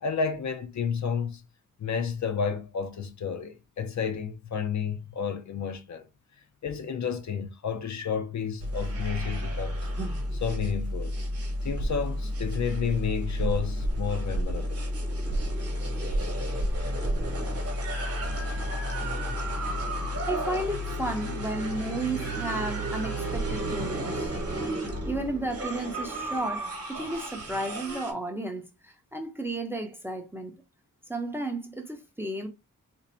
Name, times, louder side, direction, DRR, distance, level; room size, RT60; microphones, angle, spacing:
voice 1, 0.0-1.4 1.8-6.1 6.6-9.8 10.3-11.2 11.6-14.8, left 6 dB, 55° left, 0.5 m, -31 dB
sound 1, 8.6-28.1, equal, 45° right, 1.0 m, -31 dB
voice 2, 20.3-24.3 25.0-30.5 31.1-32.5, right 2 dB, 5° right, 0.5 m, -33 dB
2.7 x 2.5 x 4.2 m
wide cardioid pair, 175°, 34 cm